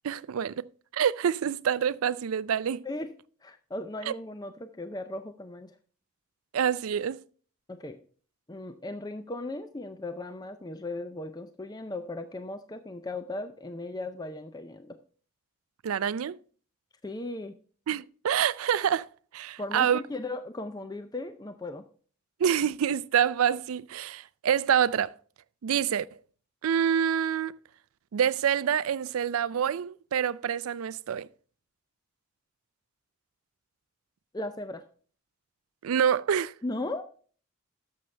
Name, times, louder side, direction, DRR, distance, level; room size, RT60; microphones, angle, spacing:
voice 1, 0.0-2.8 4.1-4.2 6.5-7.2 15.8-16.4 17.9-19.1 19.3-20.0 22.4-25.1 25.6-26.1 26.6-27.6 28.1-31.3 35.8-36.5, right 8 dB, 85° right, 0.4 m, -27 dB
voice 2, 3.4-5.7 7.7-8.0 8.5-15.0 17.0-17.6 19.6-21.8 34.3-34.8 36.6-37.2, left 2 dB, 20° left, 0.5 m, -37 dB
11.5 x 7.1 x 3.3 m
head